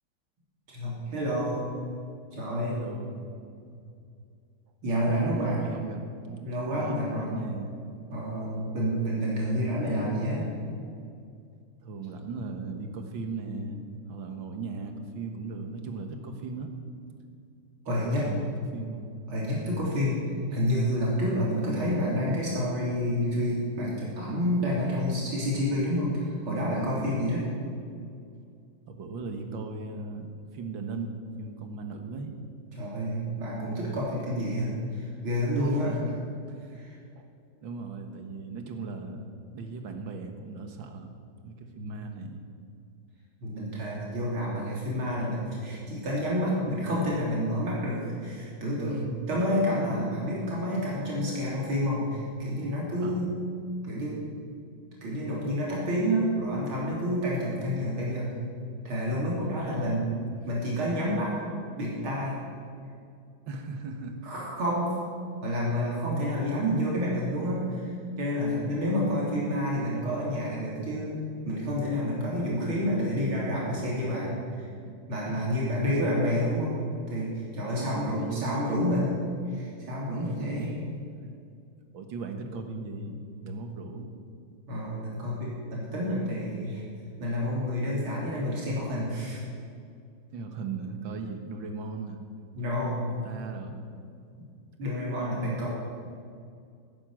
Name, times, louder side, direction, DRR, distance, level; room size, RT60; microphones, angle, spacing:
voice 1, 0.7-1.6 2.3-2.8 4.8-5.7 6.4-7.3 8.1-10.5 17.8-18.3 19.3-20.2 20.5-27.4 32.8-36.0 36.7-37.0 41.8-41.9 43.4-53.4 53.8-54.2 55.0-58.3 58.8-60.1 60.5-61.4 61.8-62.4 64.2-65.0 65.4-67.9 68.2-74.7 75.1-76.8 77.1-79.2 79.5-80.7 83.5-83.6 84.7-86.9 87.2-89.4 92.6-93.1 94.8-95.7, equal, 85° right, -5 dB, 4.0 m, -29 dB
voice 2, 2.7-3.2 5.1-6.0 6.2-6.5 6.7-7.7 11.8-13.8 14.1-16.7 18.0-19.1 28.9-32.3 35.3-36.1 36.5-36.8 37.2-37.3 37.6-39.3 39.5-41.1 41.4-42.4 48.8-49.2 53.0-53.3 59.4-60.4 63.5-64.2 74.9-75.0 75.3-75.7 77.7-78.9 80.1-80.8 81.9-84.1 90.3-92.2 92.9-93.9, right 3 dB, 70° right, 5 dB, 2.2 m, -38 dB
16.5 x 10.5 x 7.8 m, 2.4 s
omnidirectional pair, 2.2 m